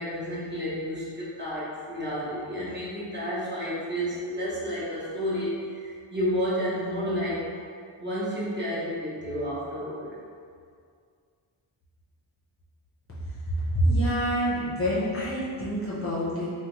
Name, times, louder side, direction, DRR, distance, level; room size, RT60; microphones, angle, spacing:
voice 1, 0.0-7.5 8.0-10.1, equal, 25° right, -9 dB, 0.8 m, -31 dB
voice 2, 13.6-16.5, equal, 30° left, -8 dB, 0.6 m, -26 dB
3.4 x 2.2 x 2.9 m, 2.2 s
wide cardioid pair, 130°, 47 cm